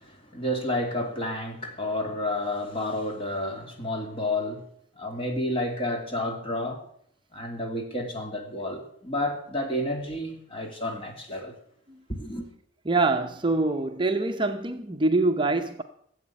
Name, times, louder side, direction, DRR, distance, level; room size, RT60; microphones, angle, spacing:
voice 1, 0.0-4.7 5.0-6.8 7.3-11.6 12.1-12.5, left 1 dB, 30° left, 2.7 m, -30 dB
voice 2, 12.9-15.8, right 3 dB, 25° right, 0.7 m, -25 dB
15.0 x 8.0 x 8.4 m
head